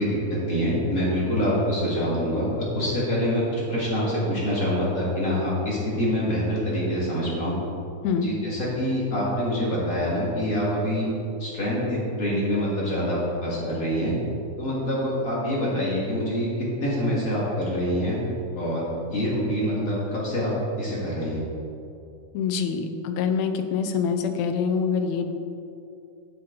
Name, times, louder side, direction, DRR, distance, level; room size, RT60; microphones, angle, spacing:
voice 1, 0.0-7.5 8.2-11.1 11.4-14.1 14.6-18.2 18.5-18.8 19.1-21.4, equal, 35° left, -7 dB, 1.9 m, -25 dB
voice 2, 22.3-25.3, left 6 dB, 75° left, 7 dB, 1.8 m, -25 dB
8.5 x 7.5 x 3.8 m, 2.7 s
omnidirectional pair, 3.5 m